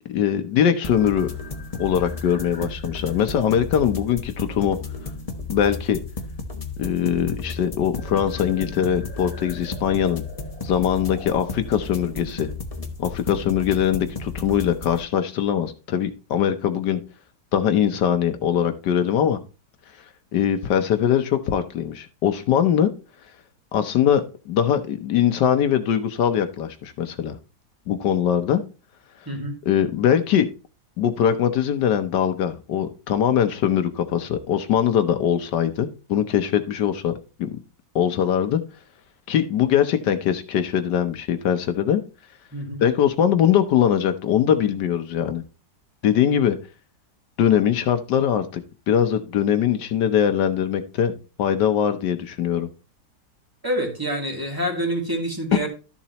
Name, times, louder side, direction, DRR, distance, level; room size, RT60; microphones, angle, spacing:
voice 1, 0.1-1.3 1.8-4.8 5.5-6.0 6.8-10.2 10.6-12.5 13.0-17.0 17.5-19.4 20.3-22.9 23.7-27.3 27.9-28.6 29.6-30.5 31.0-37.1 37.4-37.5 37.9-38.6 39.3-42.0 42.8-45.4 46.0-46.6 47.4-48.6 48.9-52.7 55.5-55.7, left 9 dB, 80° left, 9 dB, 1.4 m, -21 dB
sound 1, 0.8-15.0, left 3 dB, 25° left, 0.9 m, -33 dB
voice 2, 53.6-55.7, equal, 10° right, 1 dB, 2.5 m, -27 dB
13.0 x 7.1 x 2.9 m, 0.32 s
omnidirectional pair, 1.8 m